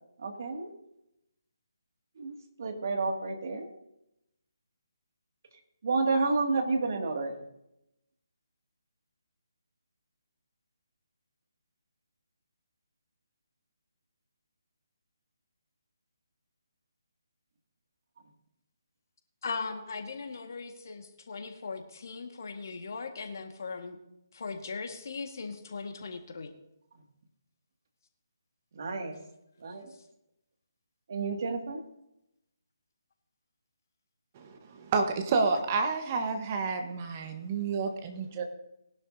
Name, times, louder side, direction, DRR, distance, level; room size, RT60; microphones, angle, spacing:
voice 1, 0.2-0.7 2.2-2.3 2.6-3.7 5.8-7.3 28.8-29.2 29.6-29.9 31.1-31.8, right 3 dB, 50° right, 3 dB, 2.3 m, -30 dB
voice 2, 19.4-24.0 24.3-26.5, left 4 dB, 50° left, 5 dB, 1.7 m, -39 dB
voice 3, 34.3-38.4, right 4 dB, 30° right, 4 dB, 1.4 m, -30 dB
20.0 x 11.5 x 2.8 m, 0.85 s
figure-of-eight pair, 145°, 2 cm